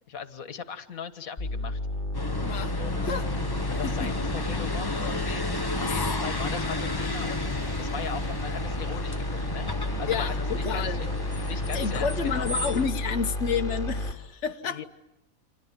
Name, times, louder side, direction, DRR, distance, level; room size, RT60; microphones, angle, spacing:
voice 1, 0.1-1.8 2.8-3.1 3.7-11.1 11.4-12.6 14.6-14.8, left 6 dB, 85° left, 10 dB, 1.8 m, -39 dB
sound 1, 1.4-14.1, left 1 dB, 40° left, 4.6 m, -32 dB
sound 2, 2.1-12.9, left 3 dB, 20° left, 0.9 m, -33 dB
voice 2, 2.4-2.8 3.0-3.2 5.8-5.9 10.1-11.0 11.7-14.8, left 6 dB, 55° left, 5 dB, 1.5 m, -30 dB
30.0 x 26.0 x 7.4 m, 0.90 s
omnidirectional pair, 1.4 m